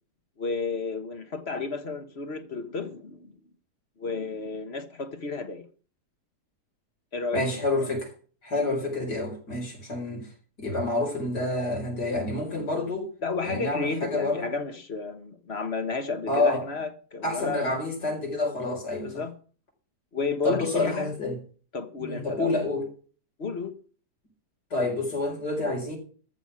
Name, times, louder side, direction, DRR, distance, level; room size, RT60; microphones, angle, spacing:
voice 1, 0.4-3.3 4.0-5.7 7.1-7.9 13.2-17.8 19.0-19.3 20.1-21.1 21.7-22.5 23.4-23.8, left 4 dB, 40° left, 1.4 m, -32 dB
voice 2, 7.3-8.1 8.4-10.3 10.6-13.1 13.4-14.5 16.3-16.6 17.2-19.1 20.4-21.4 22.0-22.9 24.7-26.0, left 2 dB, 80° left, 5.5 m, -28 dB
13.5 x 6.0 x 9.6 m
omnidirectional pair, 1.7 m